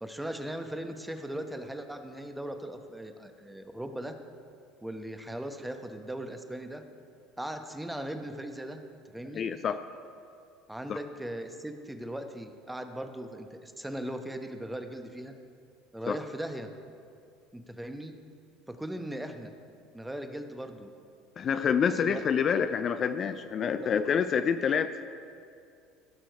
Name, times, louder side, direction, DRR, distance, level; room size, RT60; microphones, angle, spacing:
voice 1, 0.0-4.2 4.8-6.8 7.4-8.8 9.1-9.5 10.7-15.3 15.9-16.7 17.5-18.2 18.7-19.5 19.9-20.9 21.6-22.2 23.8-23.9, right 1 dB, 5° right, 7 dB, 0.9 m, -38 dB
voice 2, 9.3-9.8 10.9-11.0 16.1-16.2 21.4-24.9, left 7 dB, 40° left, 10 dB, 0.4 m, -27 dB
16.0 x 6.2 x 4.7 m, 2.4 s
hypercardioid pair, 70°, 0 cm